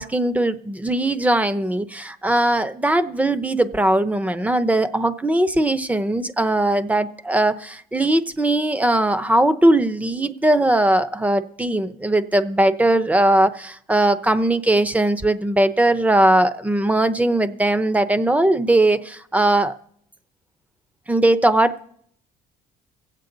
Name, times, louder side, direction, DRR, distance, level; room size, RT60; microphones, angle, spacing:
voice 1, 0.0-19.8 21.1-21.9, right 1 dB, 10° right, 13 dB, 0.7 m, -19 dB
24.5 x 8.3 x 3.9 m, 0.69 s
cardioid pair, 110°, 17 cm